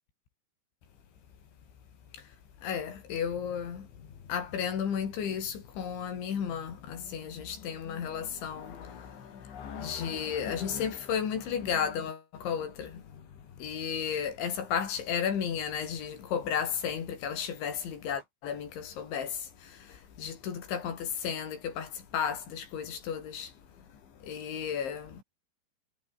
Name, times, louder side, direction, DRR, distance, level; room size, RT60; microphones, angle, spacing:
voice 1, 2.6-3.9 4.3-23.5 23.9-25.2, left 7 dB, 90° left, 6.4 m, -34 dB
omnidirectional pair, 5.1 m